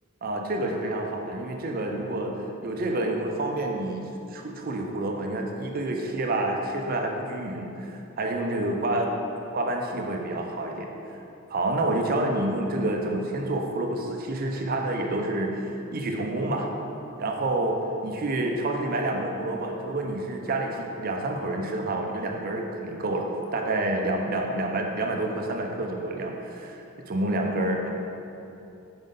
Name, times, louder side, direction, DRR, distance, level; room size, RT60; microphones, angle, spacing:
voice 1, 0.2-2.4 2.6-9.1 9.5-10.9 11.5-16.7 17.2-17.8 18.0-26.8 27.1-27.9, right 2 dB, 45° right, 2 dB, 0.5 m, -28 dB
5.2 x 5.2 x 3.7 m, 2.8 s
head